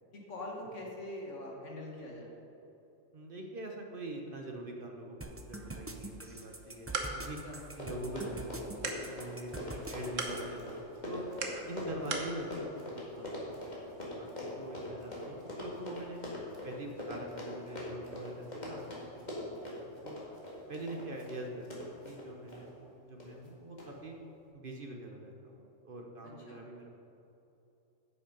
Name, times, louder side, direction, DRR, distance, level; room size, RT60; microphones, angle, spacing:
voice 1, 0.1-2.3 7.2-7.6 12.1-12.2 26.2-26.6, left 1 dB, 65° left, -2 dB, 2.2 m, -44 dB
voice 2, 3.1-7.4 7.8-11.2 11.6-13.3 13.6-16.2 16.6-20.2 20.7-24.2 24.5-27.0, right 2 dB, 45° right, 1 dB, 1.1 m, -44 dB
sound 1, 5.2-10.4, right 2 dB, 20° right, 0.4 m, -44 dB
sound 2, 6.5-12.4, right 4 dB, 70° right, 1.4 m, -42 dB
Run, 7.4-7.5 7.6-22.6 23.2-23.5 23.8-23.9, left 1 dB, 35° left, 2.3 m, -42 dB
9.9 x 8.5 x 5.3 m, 3.0 s
omnidirectional pair, 1.4 m